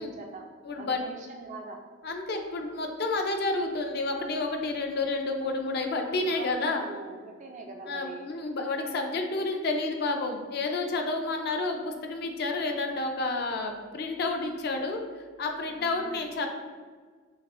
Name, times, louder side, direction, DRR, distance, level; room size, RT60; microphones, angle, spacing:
voice 1, 0.0-0.5 0.8-1.9 6.2-8.3 15.7-16.3, right 3 dB, 35° right, 2 dB, 0.3 m, -42 dB
voice 2, 0.6-1.0 2.0-6.8 7.9-15.0 15.4-16.5, left 3 dB, 50° left, 4 dB, 0.4 m, -30 dB
5.9 x 2.4 x 2.5 m, 1.5 s
head